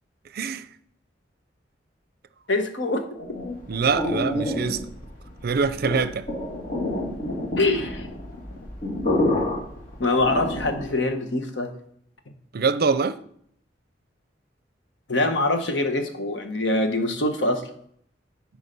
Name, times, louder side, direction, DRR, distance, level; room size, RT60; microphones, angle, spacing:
voice 1, 0.3-0.6 3.7-4.8 5.4-6.3 12.5-13.2, right 5 dB, 55° right, 0.5 m, -24 dB
voice 2, 2.5-3.0 7.6-8.1 10.0-11.7 15.1-17.6, left 2 dB, 75° left, 1.3 m, -24 dB
sound 1, 3.1-11.0, left 1 dB, 50° left, 2.4 m, -28 dB
11.0 x 4.6 x 5.4 m
head